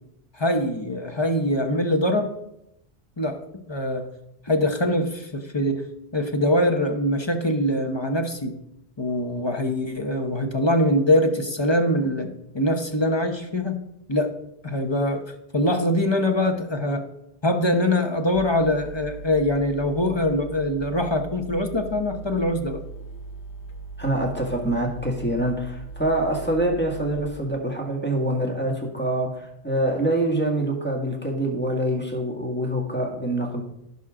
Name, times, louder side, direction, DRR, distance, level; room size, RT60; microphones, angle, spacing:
voice 1, 0.3-2.3 3.2-3.4 3.7-4.1 4.5-5.8 6.1-8.6 9.0-12.3 12.5-13.8 14.1-14.3 14.6-17.1 17.4-22.8, left 1 dB, 25° left, 4 dB, 0.9 m, -23 dB
sound 1, 18.3-27.3, right 3 dB, 80° left, 1.3 m, -39 dB
voice 2, 24.0-33.6, right 1 dB, 10° left, -1 dB, 1.8 m, -25 dB
16.0 x 5.5 x 3.8 m, 0.81 s
omnidirectional pair, 1.1 m